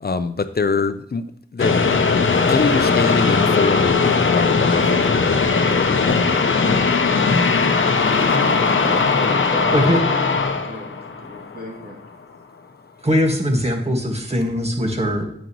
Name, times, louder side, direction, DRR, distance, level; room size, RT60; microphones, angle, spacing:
voice 1, 0.0-1.3 1.5-1.9 2.5-6.1, left 4 dB, 55° left, 11 dB, 0.7 m, -24 dB
sound 1, 1.6-11.8, left 4 dB, 85° left, 0.8 m, -18 dB
voice 2, 8.8-10.2 10.6-12.0, equal, 55° right, -2 dB, 2.7 m, -34 dB
voice 3, 13.0-15.2, equal, 30° right, 2 dB, 1.9 m, -20 dB
9.1 x 8.2 x 3.1 m, 0.71 s
wide cardioid pair, 55°, 20 cm